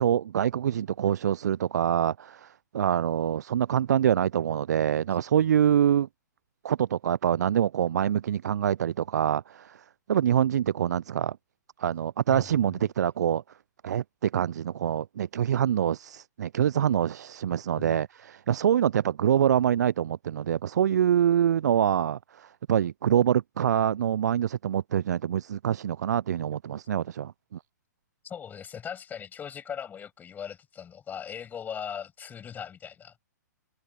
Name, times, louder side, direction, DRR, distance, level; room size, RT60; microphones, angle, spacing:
voice 1, 0.0-6.1 6.6-9.8 10.1-11.4 11.8-13.4 13.8-27.3, right 9 dB, 65° right, 0.4 m, -25 dB
voice 2, 12.3-12.8 17.8-18.0 28.2-33.3, left 8 dB, 15° left, 6.4 m, -39 dB
figure-of-eight pair, 115°, 10 cm